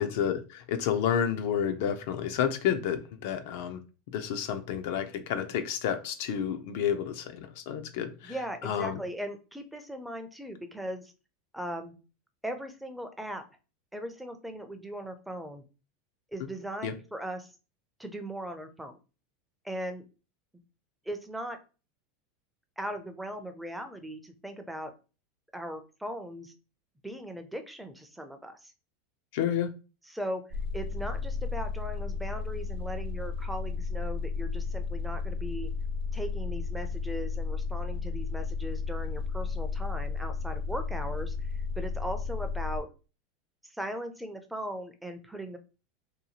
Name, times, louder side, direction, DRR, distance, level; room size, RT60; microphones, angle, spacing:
voice 1, 0.0-3.8 4.1-8.4 8.6-9.0 16.8-16.9 29.3-29.7, left 9 dB, 65° left, 8 dB, 0.3 m, -30 dB
voice 2, 8.2-11.1 11.5-12.0 12.4-13.4 13.9-15.6 16.3-17.5 18.0-19.0 19.6-20.0 21.1-21.6 22.8-24.9 25.5-26.5 27.0-28.7 30.1-30.4 30.7-35.7 36.1-42.9 43.6-45.6, equal, 5° right, 7 dB, 0.4 m, -38 dB
sound 1, 30.5-42.8, left 4 dB, 60° right, 0.5 m, -33 dB
2.7 x 2.3 x 2.7 m, 0.32 s
supercardioid pair, 145°, 0 cm